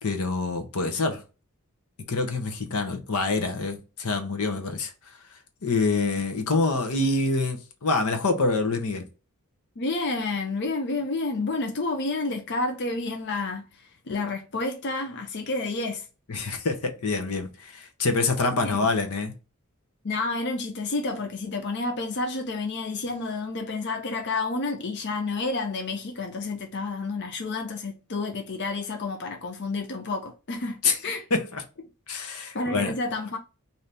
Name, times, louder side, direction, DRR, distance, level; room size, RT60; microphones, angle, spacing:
voice 1, 0.0-1.2 2.1-4.9 5.6-9.0 16.3-19.3 30.8-31.0 31.3-31.6 32.1-32.9, left 3 dB, 85° left, 0.8 m, -26 dB
voice 2, 9.8-13.6 14.1-16.1 18.5-18.9 20.0-31.2 32.5-33.4, left 3 dB, 50° left, 0.6 m, -30 dB
2.7 x 2.7 x 3.3 m
head